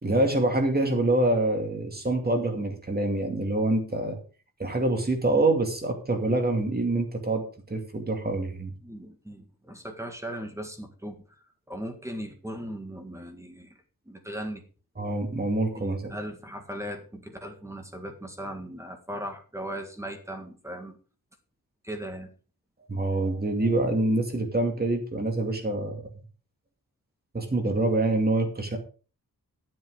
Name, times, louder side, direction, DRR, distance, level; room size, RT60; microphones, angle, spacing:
voice 1, 0.0-4.2 4.6-8.7 15.0-16.1 22.9-26.0 27.3-28.8, right 2 dB, 25° right, 4 dB, 2.5 m, -26 dB
voice 2, 8.8-11.2 11.7-13.7 14.1-14.6 15.8-21.0 21.8-22.3, equal, 10° right, 5 dB, 1.8 m, -38 dB
12.0 x 7.6 x 5.0 m, 0.37 s
wide cardioid pair, 170°, 36 cm